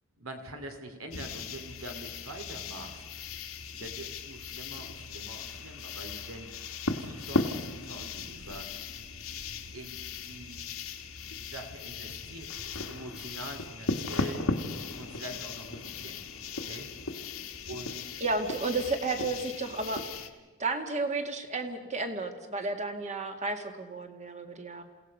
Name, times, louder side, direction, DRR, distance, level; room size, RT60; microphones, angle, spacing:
voice 1, 0.2-3.0 3.8-6.5 7.0-8.7 9.7-10.6 11.4-14.5 15.0-16.2 16.6-16.9 17.7-18.0, right 1 dB, 70° right, 6 dB, 2.7 m, -44 dB
sound 1, 1.1-20.3, left 3 dB, 75° left, 1.5 m, -37 dB
voice 2, 18.2-20.0 20.6-24.8, right 3 dB, 35° right, 6 dB, 1.8 m, -32 dB
28.0 x 17.0 x 5.4 m, 1.3 s
head